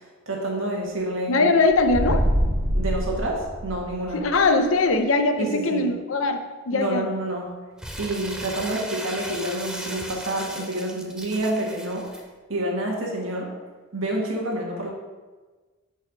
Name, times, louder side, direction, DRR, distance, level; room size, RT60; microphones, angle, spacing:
voice 1, 0.0-1.4 2.7-4.2 5.4-5.9 6.7-7.5 8.0-12.2 12.5-13.5 13.9-14.9, right 1 dB, 80° right, -1 dB, 1.6 m, -28 dB
voice 2, 1.3-2.2 4.1-6.4 6.7-7.1, left 3 dB, 80° left, 7 dB, 0.6 m, -21 dB
sound 1, 1.7-4.2, equal, 55° right, 1.5 m, -24 dB
Crumpling crinkling, 7.8-12.2, equal, 5° right, 0.5 m, -37 dB
5.2 x 4.5 x 5.9 m, 1.3 s
head